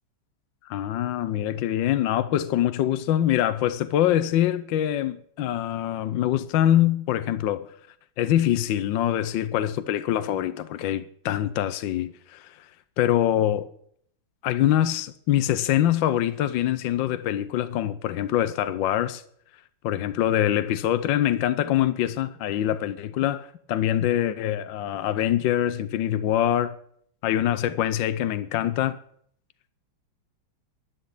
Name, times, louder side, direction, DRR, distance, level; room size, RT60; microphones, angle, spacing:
voice 1, 0.6-7.7 8.2-12.6 13.0-13.7 14.4-19.2 19.8-26.7 27.2-29.0, left 11 dB, 70° left, 1.4 m, -24 dB
11.5 x 11.0 x 8.1 m
omnidirectional pair, 2.2 m